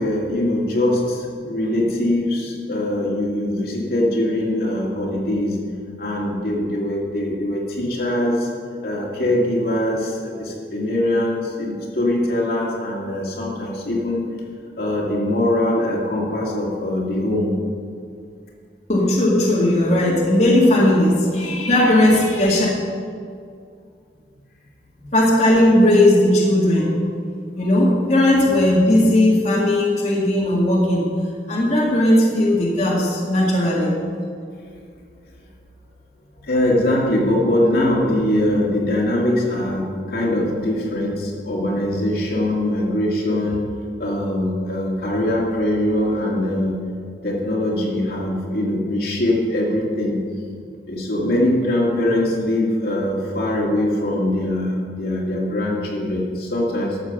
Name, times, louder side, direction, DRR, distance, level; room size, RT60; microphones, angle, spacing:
voice 1, 0.0-5.6 6.0-8.5 8.8-14.2 14.8-17.5 25.0-25.1 36.4-43.7 44.0-46.8 47.2-50.2 50.9-57.0, left 1 dB, 55° left, -3 dB, 2.2 m, -22 dB
voice 2, 18.9-22.7 25.1-26.9 27.6-31.0 31.5-33.9, left 1 dB, 40° left, -5 dB, 2.0 m, -17 dB
13.0 x 7.1 x 5.9 m, 2.2 s
head